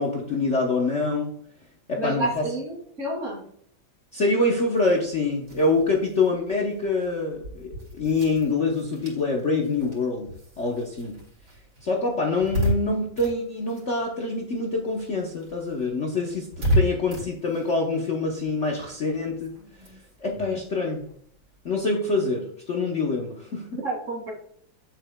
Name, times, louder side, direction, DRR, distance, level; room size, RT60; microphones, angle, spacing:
voice 1, 0.0-1.3 1.9-2.5 4.1-10.3 10.6-11.1 11.8-19.6 20.2-21.1 21.6-23.7, left 3 dB, 45° left, -1 dB, 1.1 m, -25 dB
voice 2, 2.0-3.4 23.8-24.3, right 2 dB, 40° right, -1 dB, 2.8 m, -30 dB
sound 1, 4.7-14.6 14.9-21.8, equal, 85° right, 3.3 m, -33 dB
8.4 x 7.3 x 2.3 m, 0.64 s
omnidirectional pair, 2.1 m